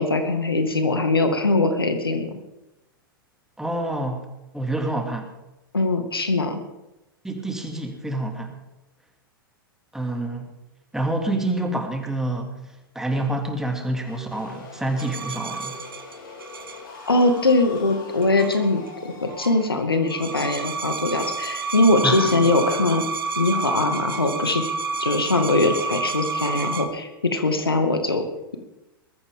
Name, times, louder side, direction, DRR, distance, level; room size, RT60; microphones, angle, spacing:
voice 1, 0.0-2.3 5.7-6.6 17.1-23.0 23.4-24.6 25.0-28.2, left 2 dB, 85° left, 6 dB, 2.1 m, -21 dB
voice 2, 3.6-4.2 4.5-5.3 7.2-8.5 9.9-10.5 10.9-12.5 12.9-15.8 22.0-22.3, right 1 dB, 5° right, 3 dB, 2.7 m, -27 dB
sound 1, 14.1-21.8, left 4 dB, 65° left, 4.6 m, -43 dB
sound 2, 15.0-17.5 18.2-18.9 19.2-19.6 20.0-26.9, right 4 dB, 70° right, 1.4 m, -30 dB
21.0 x 14.0 x 3.8 m, 0.95 s
figure-of-eight pair, 100°, 12 cm